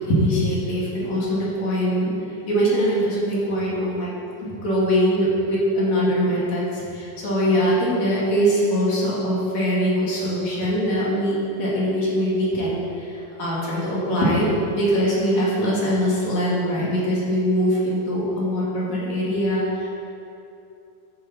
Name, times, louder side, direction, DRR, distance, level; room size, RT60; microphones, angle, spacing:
voice 1, 0.0-2.1 2.5-4.1 4.4-14.5 14.7-19.9, equal, 50° left, -7 dB, 3.3 m, -22 dB
13.0 x 9.4 x 4.2 m, 2.8 s
omnidirectional pair, 4.5 m